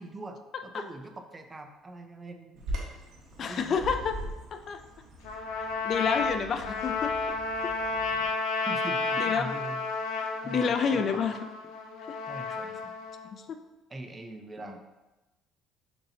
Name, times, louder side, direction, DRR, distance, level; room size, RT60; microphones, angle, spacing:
voice 1, 0.0-2.8 3.4-3.9 8.7-9.8 10.4-11.2 12.3-12.9 13.9-14.8, right 2 dB, 20° right, 5 dB, 0.5 m, -42 dB
Bird vocalization bird call bird song, 2.6-8.3, equal, 70° right, 1.2 m, -41 dB
voice 2, 3.4-4.2 4.5-4.8 5.6-7.2 7.6-7.7 9.2-9.5 10.5-11.4 12.1-12.2 12.5-12.6 13.3-13.6, left 6 dB, 45° left, 8 dB, 0.3 m, -29 dB
Trumpet, 5.2-13.3, left 4 dB, 85° left, 0.6 m, -32 dB
6.8 x 2.8 x 2.7 m, 1.1 s
cardioid pair, 125°, 0 cm